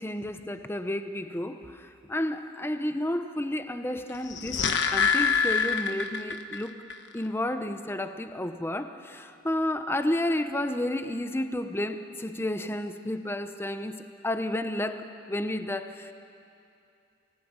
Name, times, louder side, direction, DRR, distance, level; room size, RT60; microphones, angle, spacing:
voice 1, 0.0-6.8 7.1-16.1, left 1 dB, 15° left, 8 dB, 0.9 m, -31 dB
sound 1, 4.1-6.6 6.9-7.0, left 6 dB, 70° left, 1.3 m, -25 dB
28.5 x 19.0 x 8.9 m, 2.6 s
head